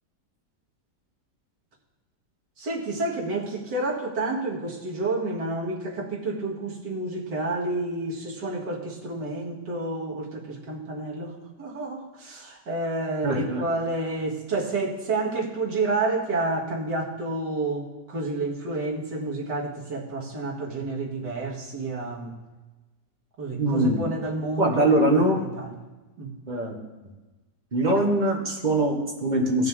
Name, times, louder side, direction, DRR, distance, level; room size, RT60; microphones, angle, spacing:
voice 1, 2.6-22.4 23.4-25.8 26.2-26.3, right 2 dB, 85° right, -3 dB, 2.4 m, -30 dB
voice 2, 13.2-13.6 23.6-24.0 24.6-25.4 26.5-26.8 27.7-29.7, right 1 dB, 25° right, 0 dB, 1.7 m, -22 dB
17.0 x 6.5 x 3.6 m, 1.2 s
omnidirectional pair, 1.8 m